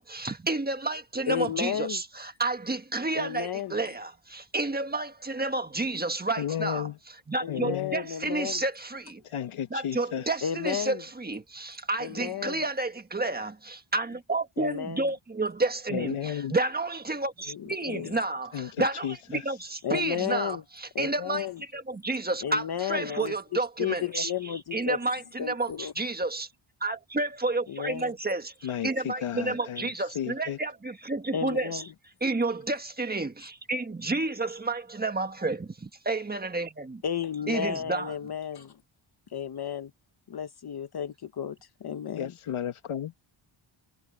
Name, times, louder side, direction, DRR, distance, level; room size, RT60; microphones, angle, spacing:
voice 1, 0.0-6.9 7.3-9.2 9.7-26.5 26.8-31.8 32.2-37.0 37.5-38.1, right 2 dB, 20° right, 1.5 m, -31 dB
voice 2, 1.3-2.0 3.1-3.8 7.4-8.6 10.4-11.0 12.0-12.6 14.6-15.1 17.5-18.2 19.8-20.6 20.9-21.6 22.4-23.3 23.8-25.0 25.4-25.9 27.7-28.1 31.3-31.9 37.0-38.8 39.3-39.9 40.3-42.3, left 9 dB, 50° left, 1.0 m, -33 dB
voice 3, 6.4-7.0 7.5-8.0 9.2-10.3 15.9-16.6 18.5-19.4 28.6-30.6 42.1-43.1, left 10 dB, 85° left, 1.9 m, -33 dB
wide cardioid pair, 145°, 49 cm